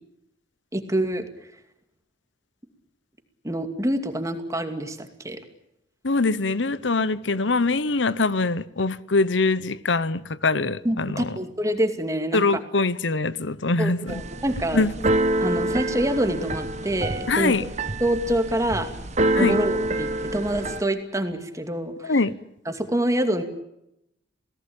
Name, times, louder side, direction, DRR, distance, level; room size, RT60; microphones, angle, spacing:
voice 1, 0.7-1.3 3.4-5.4 10.8-12.4 13.8-14.8 15.4-17.7 18.0-18.9 19.4-22.2 22.7-23.4, right 1 dB, 15° right, 2.5 m, -26 dB
voice 2, 6.0-11.4 12.3-14.2 14.7-14.9 17.3-17.7 19.3-19.6 22.0-22.3, left 3 dB, 80° left, 1.1 m, -23 dB
Keyboard (musical), 14.1-20.8, right 1 dB, 40° right, 1.3 m, -26 dB
28.5 x 18.0 x 8.9 m
head